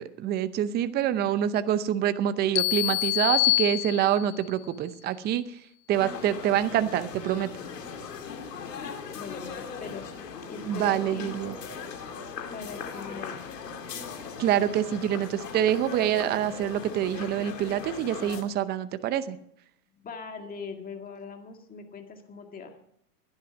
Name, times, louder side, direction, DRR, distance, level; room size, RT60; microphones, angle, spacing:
voice 1, 0.0-5.4 5.9-7.5 10.7-11.5 14.4-19.4, right 10 dB, 20° right, 14 dB, 0.7 m, -26 dB
sound 1, 2.6-4.4, left 22 dB, 40° left, 0.5 m, -26 dB
sound 2, 5.9-18.4, left 6 dB, 90° left, 2.7 m, -39 dB
voice 2, 9.1-10.1 10.5-11.8 12.5-13.5 20.0-22.8, left 5 dB, 20° left, 4 dB, 2.1 m, -41 dB
16.0 x 11.0 x 5.9 m, 0.72 s
hypercardioid pair, 125°, 47 cm